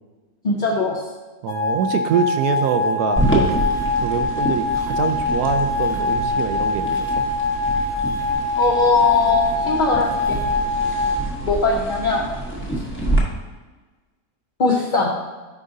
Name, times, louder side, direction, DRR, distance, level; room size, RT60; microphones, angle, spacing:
voice 1, 0.4-1.0 8.6-10.4 11.4-12.2 14.6-15.2, left 3 dB, 45° left, -3 dB, 0.7 m, -20 dB
voice 2, 1.4-3.6 4.0-7.2, right 7 dB, 85° right, 8 dB, 1.1 m, -24 dB
sound 1, 1.5-11.2, left 3 dB, 90° left, 0.4 m, -23 dB
sound 2, 3.2-13.2, right 1 dB, 10° left, 0.9 m, -27 dB
8.4 x 5.0 x 2.7 m, 1.3 s
omnidirectional pair, 1.6 m